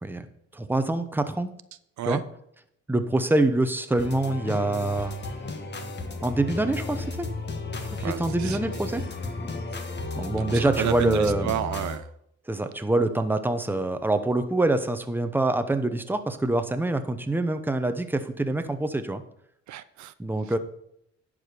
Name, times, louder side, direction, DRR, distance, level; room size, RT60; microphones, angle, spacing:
voice 1, 0.5-1.5 2.0-2.2 2.9-5.2 6.2-7.3 8.0-9.0 10.1-11.5 12.5-19.2 20.2-20.6, right 2 dB, 5° right, 0.9 m, -25 dB
sound 1, 4.0-12.0, left 3 dB, 35° left, 1.5 m, -33 dB
voice 2, 8.0-8.8 10.4-12.1 19.7-20.1, right 12 dB, 70° right, 0.5 m, -31 dB
11.0 x 4.9 x 6.7 m
cardioid pair, 90°, 30 cm